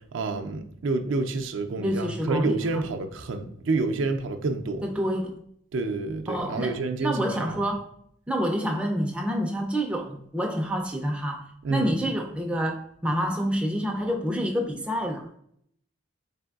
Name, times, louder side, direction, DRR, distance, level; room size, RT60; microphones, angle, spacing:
voice 1, 0.1-4.9 5.7-7.5 11.6-11.9, right 3 dB, 75° right, 0.4 m, -28 dB
voice 2, 1.8-2.6 4.8-5.4 6.3-7.9 8.3-15.3, equal, 5° right, 0.3 m, -28 dB
4.4 x 3.3 x 2.3 m
head